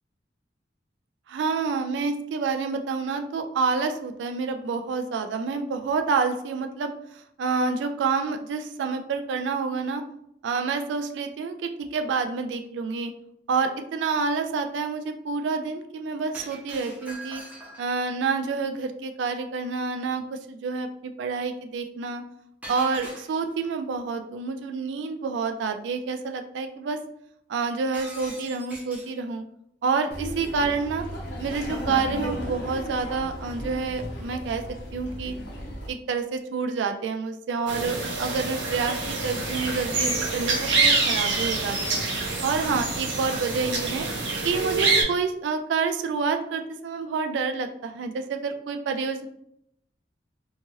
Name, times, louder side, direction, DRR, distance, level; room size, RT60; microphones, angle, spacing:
voice 1, 1.3-10.0 10.4-13.1 13.5-17.4 17.8-22.2 22.7-27.0 27.5-29.4 29.8-31.0 31.4-34.6 34.9-35.3 35.9-42.0 42.4-44.1 44.4-49.3, right 4 dB, 70° right, 7 dB, 0.3 m, -28 dB
Shatter, 16.3-18.0 22.6-23.7 27.9-29.2, right 1 dB, 10° right, 0.7 m, -42 dB
Laughter, 30.1-35.9, equal, 65° left, 0.6 m, -35 dB
sound 1, 37.7-45.0, right 3 dB, 90° right, 0.7 m, -26 dB
2.8 x 2.4 x 3.0 m, 0.75 s
head